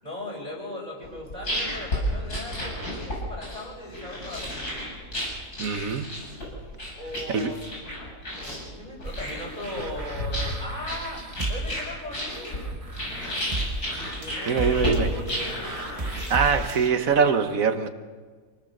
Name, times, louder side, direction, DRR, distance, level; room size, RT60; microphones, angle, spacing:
voice 1, 0.0-4.8 7.0-7.6 8.3-12.6 14.1-15.8, left 1 dB, 25° left, -3 dB, 7.2 m, -38 dB
sound 1, 1.0-17.1, equal, 70° left, 7.9 m, -32 dB
voice 2, 5.6-6.1 7.3-7.5 14.5-15.1 16.0-17.9, right 6 dB, 60° right, 8 dB, 1.7 m, -23 dB
sound 2, 9.0-16.9, right 1 dB, 25° right, 1.3 m, -34 dB
28.0 x 19.0 x 6.7 m, 1.5 s
omnidirectional pair, 1.7 m